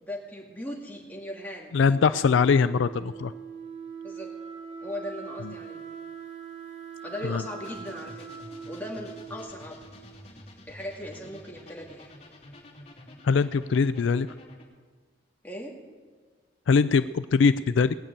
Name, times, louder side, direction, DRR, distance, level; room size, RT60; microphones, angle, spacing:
voice 1, 0.0-1.7 4.0-4.3 4.8-5.8 7.0-9.8 10.7-12.1 15.4-15.8, left 1 dB, 10° left, -3 dB, 2.5 m, -38 dB
Wind instrument woodwind instrument, 1.6-10.4, right 6 dB, 35° right, 3.0 m, -42 dB
voice 2, 1.7-3.3 5.4-5.5 7.2-7.4 13.2-14.3 16.7-18.0, left 5 dB, 75° left, 13 dB, 0.4 m, -22 dB
sound 1, 7.6-14.6, left 1 dB, 35° left, 3.0 m, -49 dB
19.5 x 6.8 x 8.8 m, 1.5 s
head